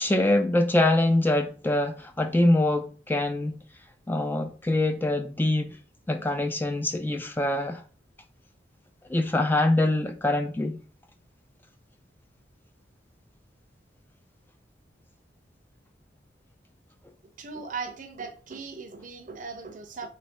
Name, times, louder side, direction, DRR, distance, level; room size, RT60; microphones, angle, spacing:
voice 1, 0.0-3.6 4.1-5.8 6.1-7.8 9.1-10.8, left 1 dB, 10° left, 0.3 m, -24 dB
voice 2, 17.2-20.1, right 5 dB, 45° right, 0.6 m, -38 dB
3.9 x 3.0 x 3.6 m
head